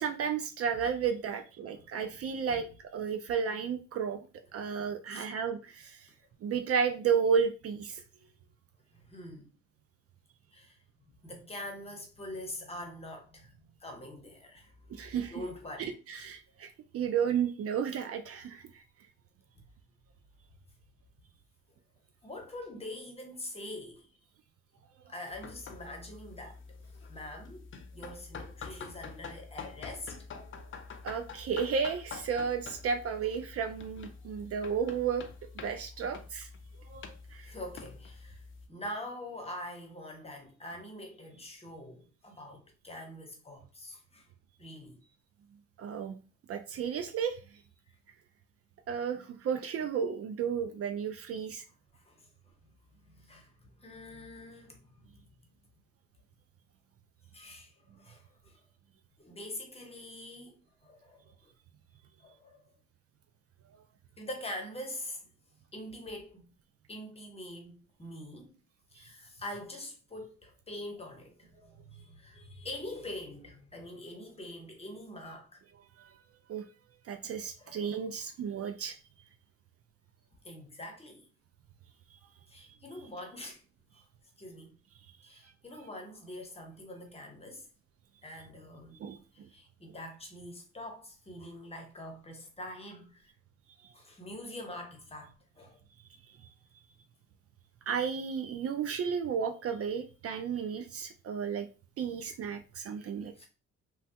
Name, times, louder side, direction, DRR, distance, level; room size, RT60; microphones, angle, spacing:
voice 1, 0.0-4.3 4.5-6.1 6.4-8.0 14.9-15.3 15.8-18.8 31.0-35.2 35.6-36.5 36.9-37.0 37.3-37.5 45.8-46.1 46.5-47.4 48.9-51.6 76.0-76.2 76.5-76.6 77.1-79.0 82.6-82.8 89.0-89.5 97.9-101.7 102.0-103.4, right 6 dB, 50° right, 0.4 m, -33 dB
voice 2, 1.6-2.7 5.1-5.3 8.9-9.5 10.5-10.8 11.2-15.9 19.5-19.6 22.2-24.1 25.1-26.6 26.8-27.7 27.9-30.2 37.4-44.3 44.6-45.0 47.9-48.0 51.9-52.3 52.6-55.3 57.3-58.6 59.2-61.5 62.2-62.6 64.2-65.3 65.7-66.5 66.9-68.5 68.9-75.6 77.4-78.1 80.4-81.3 82.5-83.6 84.4-84.8 85.2-87.7 88.2-89.0 89.3-93.3 93.9-95.8 103.4-103.5, left 1 dB, 20° left, 0.9 m, -45 dB
sound 1, 25.3-38.7, left 5 dB, 40° left, 0.5 m, -47 dB
3.1 x 2.3 x 2.8 m
cardioid pair, 90°, 30 cm